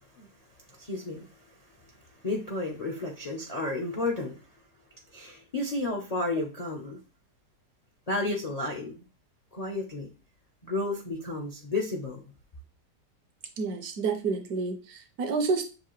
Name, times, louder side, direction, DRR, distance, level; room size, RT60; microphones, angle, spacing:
voice 1, 0.8-1.3 2.2-4.3 5.1-7.0 8.1-9.0 9.5-10.1 10.6-12.2, left 2 dB, 50° left, 0.4 m, -32 dB
voice 2, 13.6-15.7, right 4 dB, 70° right, 1.1 m, -29 dB
6.5 x 2.5 x 3.0 m
omnidirectional pair, 1.8 m